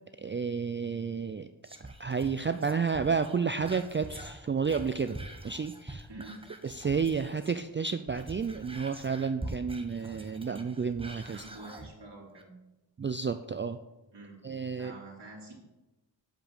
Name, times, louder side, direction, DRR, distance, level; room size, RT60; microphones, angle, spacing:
voice 1, 0.2-1.5 2.0-5.2 5.4-6.1 6.6-11.4 13.0-13.8 14.4-14.9, right 5 dB, 30° right, 9 dB, 0.3 m, -31 dB
Whispering, 1.6-7.6 8.0-11.9 12.4-12.5, right 2 dB, 10° right, 1.1 m, -45 dB
voice 2, 6.1-6.4 11.3-12.6 14.1-14.4 14.8-15.5, right 2 dB, 65° right, -3 dB, 3.3 m, -47 dB
7.9 x 5.1 x 7.3 m, 1.0 s
wide cardioid pair, 70°, 44 cm